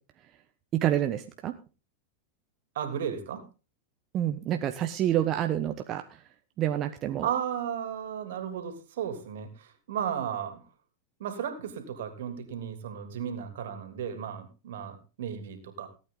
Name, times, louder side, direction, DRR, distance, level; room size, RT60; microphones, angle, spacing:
voice 1, 0.7-1.5 4.1-6.2 6.6-7.3, right 11 dB, 40° right, 6 dB, 1.1 m, -28 dB
voice 2, 2.7-3.4 7.2-10.6 11.2-15.9, right 8 dB, 70° right, 8 dB, 3.0 m, -34 dB
17.5 x 9.1 x 3.9 m, 0.32 s
hypercardioid pair, 105°, 0 cm